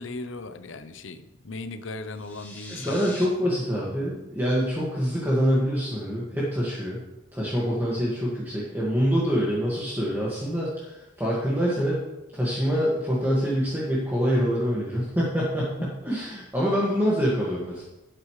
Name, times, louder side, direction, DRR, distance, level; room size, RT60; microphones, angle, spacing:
voice 1, 0.0-3.0, left 3 dB, 75° left, 11 dB, 0.7 m, -37 dB
sound 1, 2.1-3.3, left 1 dB, 10° left, 1.6 m, -42 dB
voice 2, 2.7-7.0 7.3-12.0 12.3-17.8, equal, 10° right, -7 dB, 1.8 m, -25 dB
12.0 x 9.1 x 3.2 m, 1.0 s
head